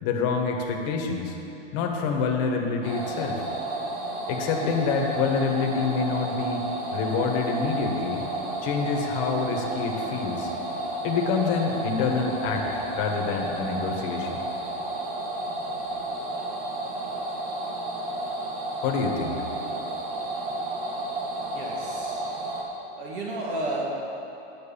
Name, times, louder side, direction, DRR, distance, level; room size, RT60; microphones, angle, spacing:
voice 1, 0.0-1.4 1.7-3.4 4.3-6.6 6.9-8.2 8.6-10.5 11.0-14.4 18.8-19.4, left 5 dB, 40° left, 1 dB, 1.3 m, -27 dB
sound 1, 2.8-22.6, right 2 dB, 40° right, 1.7 m, -32 dB
voice 2, 21.5-22.2 23.0-24.0, right 1 dB, 55° right, -1 dB, 1.4 m, -32 dB
10.0 x 6.4 x 6.9 m, 3.0 s
supercardioid pair, 160°, 32 cm